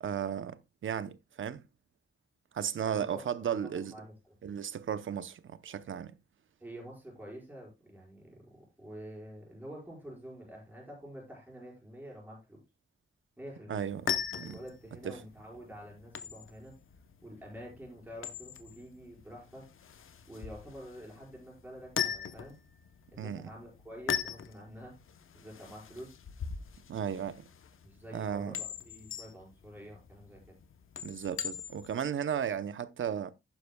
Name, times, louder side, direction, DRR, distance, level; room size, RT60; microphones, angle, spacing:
voice 1, 0.0-1.6 2.5-3.9 4.4-6.2 13.7-14.6 15.0-15.1 23.2-23.5 26.9-27.5 28.1-28.6 31.0-33.3, right 8 dB, 75° right, 0.7 m, -35 dB
voice 2, 2.8-4.4 6.6-12.6 13.4-13.8 14.4-16.8 17.2-19.7 20.3-22.6 23.1-25.0 25.3-26.1 27.8-30.6, equal, 10° right, 5.2 m, -48 dB
sound 1, 13.8-32.0, left 8 dB, 85° left, 0.9 m, -40 dB
11.5 x 9.7 x 2.3 m
wide cardioid pair, 175°, 21 cm